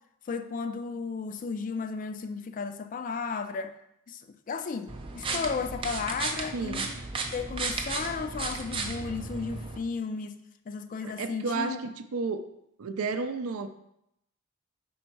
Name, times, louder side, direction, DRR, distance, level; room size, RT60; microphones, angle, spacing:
voice 1, 0.3-3.7 4.1-7.0 7.3-11.8, left 5 dB, 40° left, 0.3 m, -34 dB
sound 1, 4.9-9.8, right 3 dB, 25° right, 0.5 m, -34 dB
voice 2, 6.5-6.9 11.0-12.5 12.8-13.7, right 4 dB, 80° right, 0.5 m, -32 dB
5.4 x 3.9 x 4.5 m
head